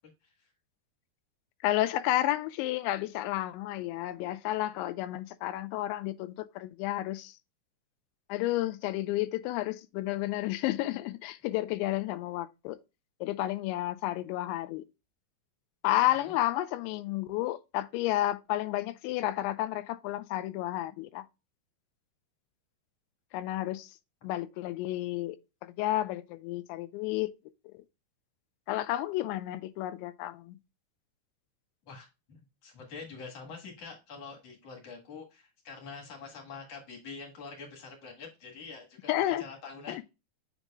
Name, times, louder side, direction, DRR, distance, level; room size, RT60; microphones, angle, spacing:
voice 1, 1.6-7.4 8.3-12.8 13.2-14.8 15.8-21.3 23.3-24.0 24.2-25.4 25.6-27.3 28.7-30.6 39.1-39.5 39.9-40.0, left 15 dB, 90° left, 2.9 m, -31 dB
voice 2, 31.9-40.0, left 4 dB, 50° left, 2.0 m, -45 dB
7.1 x 6.7 x 2.4 m
omnidirectional pair, 5.2 m